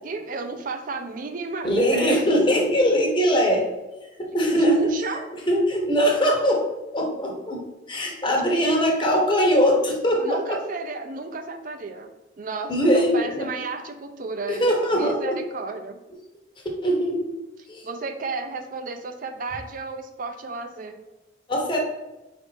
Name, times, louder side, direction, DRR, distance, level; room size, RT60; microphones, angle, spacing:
voice 1, 0.0-2.2 4.2-4.4 4.7-5.2 8.3-8.6 10.2-12.1 12.4-16.0 17.8-21.0, right 3 dB, 50° right, 7 dB, 0.5 m, -33 dB
voice 2, 1.6-3.6 4.2-4.9 5.5-6.7 6.9-10.6 12.7-13.5 14.5-15.4 16.8-17.4 17.7-17.8 21.5-21.8, equal, 25° left, 0 dB, 0.9 m, -21 dB
4.7 x 2.6 x 4.0 m, 1.0 s
head